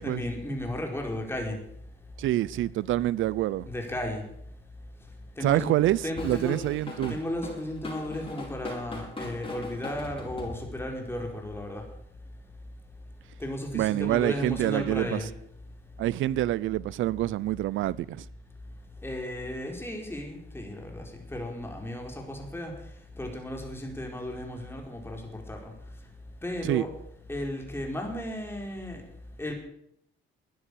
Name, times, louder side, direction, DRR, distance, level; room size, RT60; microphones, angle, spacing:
voice 1, 0.0-1.6 3.7-4.2 5.4-5.7 6.0-6.6 7.1-11.8 13.4-15.3 19.0-21.0 21.3-22.7 23.2-25.7 26.4-26.9 27.3-29.0 29.4-29.5, left 1 dB, 10° left, 4.7 m, -34 dB
voice 2, 2.2-3.7 5.4-7.1 13.7-15.2 16.0-18.2 26.6-26.9, right 14 dB, 80° right, 0.6 m, -26 dB
Drum kit / Drum, 6.2-11.0, left 2 dB, 30° left, 7.5 m, -40 dB
13.5 x 9.9 x 8.5 m
cardioid pair, 90°, 20 cm